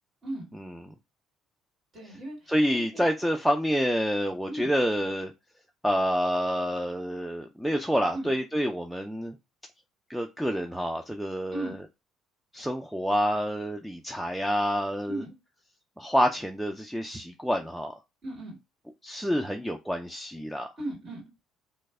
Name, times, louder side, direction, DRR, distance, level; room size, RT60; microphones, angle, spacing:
voice 1, 1.9-3.1 4.5-4.8 8.1-8.3 11.5-11.8 15.1-15.4 18.2-18.6 20.8-21.2, right 1 dB, 45° right, 1.8 m, -37 dB
voice 2, 2.5-5.3 5.8-9.3 10.1-11.8 12.5-15.2 16.0-17.9 19.0-20.7, equal, ahead, 0.3 m, -28 dB
3.1 x 2.0 x 3.4 m
cardioid pair, 105°, 0 cm